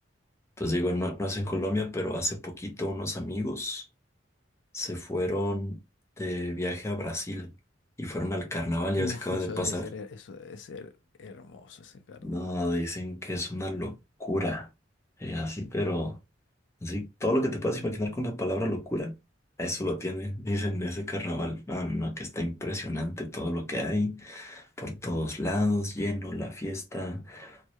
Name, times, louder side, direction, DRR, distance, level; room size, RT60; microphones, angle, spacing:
voice 1, 0.6-3.9 4.7-5.8 6.2-7.5 8.0-9.9 12.2-13.9 14.2-14.7 15.2-16.2 16.8-19.2 19.6-27.6, left 1 dB, 15° left, 0.6 m, -31 dB
voice 2, 9.0-10.9 11.2-12.5, left 4 dB, 70° left, 0.4 m, -40 dB
2.2 x 2.0 x 2.7 m
head